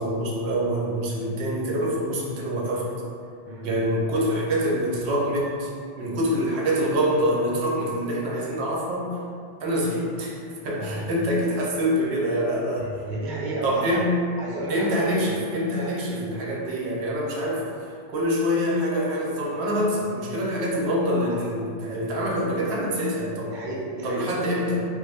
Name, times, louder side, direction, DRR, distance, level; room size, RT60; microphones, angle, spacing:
voice 1, 0.0-2.9 3.6-5.7 6.0-9.2 9.6-10.4 10.6-12.9 13.6-14.1 14.7-17.7 18.1-23.5 24.0-24.9, equal, 85° right, -3 dB, 0.9 m, -25 dB
voice 2, 12.8-14.0 14.4-14.9 15.8-15.9 21.3-21.5 23.5-24.3, right 2 dB, 55° right, -5 dB, 0.7 m, -32 dB
3.1 x 2.2 x 3.3 m, 2.3 s
omnidirectional pair, 1.1 m